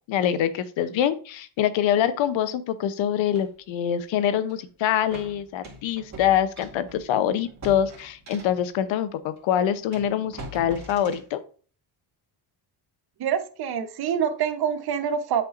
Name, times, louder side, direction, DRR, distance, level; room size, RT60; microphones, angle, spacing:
voice 1, 0.1-11.4, left 10 dB, 75° left, 0.9 m, -25 dB
sound 1, 3.3-3.5 4.5-4.6 5.1-8.7 9.4-9.5 9.9-11.3, right 1 dB, 35° right, 2.4 m, -43 dB
voice 2, 13.2-15.4, right 8 dB, 55° right, 1.0 m, -26 dB
7.7 x 5.6 x 2.6 m
cardioid pair, 110°, 46 cm